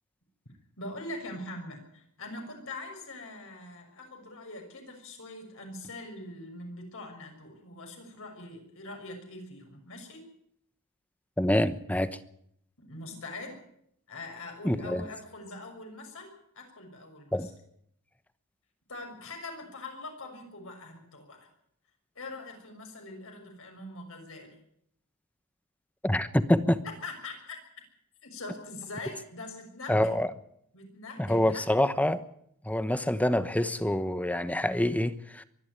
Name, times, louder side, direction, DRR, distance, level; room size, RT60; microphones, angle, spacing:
voice 1, 0.8-10.2 12.8-13.6 14.1-17.5 18.9-21.5 22.2-24.6 26.8-27.6 28.2-30.2 30.7-31.7, left 2 dB, 65° left, 6.2 m, -43 dB
voice 2, 11.4-12.2 14.6-15.0 17.3-17.5 26.0-26.8 29.9-30.3 31.2-32.2 32.6-35.4, left 1 dB, 5° left, 1.0 m, -26 dB
24.0 x 11.5 x 9.5 m
head